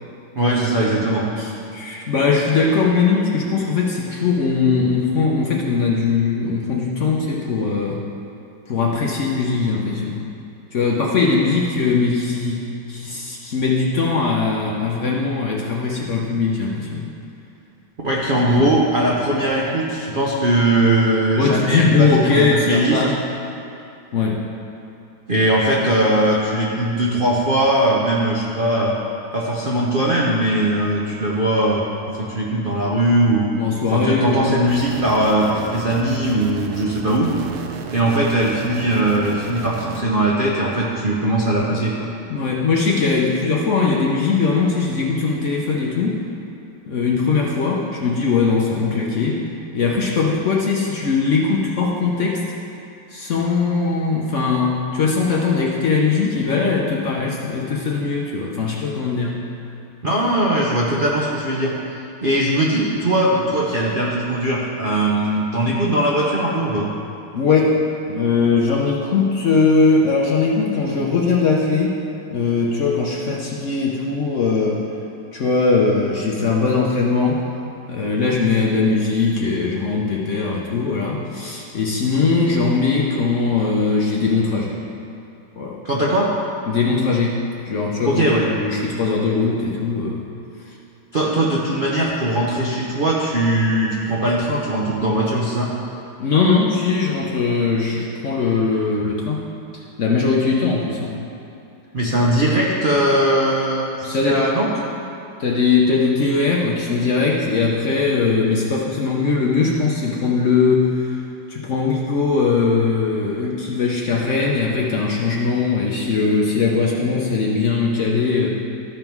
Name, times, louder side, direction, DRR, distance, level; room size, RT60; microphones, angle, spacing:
voice 1, 0.3-1.3 18.0-23.0 25.3-29.0 29.3-33.5 33.9-37.3 37.9-42.1 60.0-66.9 85.8-86.3 88.0-88.5 91.1-95.7 101.9-104.7, right 1 dB, 60° right, -4 dB, 0.5 m, -20 dB
voice 2, 1.4-8.0 8.7-10.2 10.7-17.0 18.5-18.7 21.4-23.2 24.1-24.4 33.6-34.6 42.3-46.2 46.9-49.4 49.7-52.4 53.1-59.4 67.3-72.0 72.3-74.8 75.3-77.4 77.9-84.8 85.6-85.8 86.7-90.3 90.7-90.8 96.2-99.5 99.7-101.2 104.0-104.5 105.4-111.2 111.5-118.5, left 4 dB, 70° left, -2 dB, 0.7 m, -20 dB
sound 1, 34.7-40.0, right 7 dB, 80° right, 1.5 m, -33 dB
13.5 x 5.4 x 4.6 m, 2.7 s
omnidirectional pair, 2.3 m